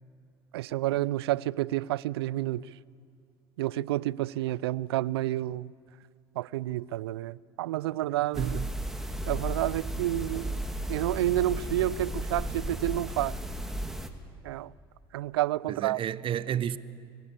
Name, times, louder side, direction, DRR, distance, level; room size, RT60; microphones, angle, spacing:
voice 1, 0.5-2.7 3.6-5.7 6.4-8.6 9.3-10.6 10.9-13.3 14.4-14.7 15.1-16.0, right 15 dB, 80° right, 0.4 m, -29 dB
sound 1, 8.3-14.1, right 1 dB, 5° right, 1.7 m, -34 dB
voice 2, 8.4-8.8 15.7-16.8, right 10 dB, 40° right, 0.8 m, -31 dB
24.5 x 12.5 x 8.5 m
hypercardioid pair, 70°, 13 cm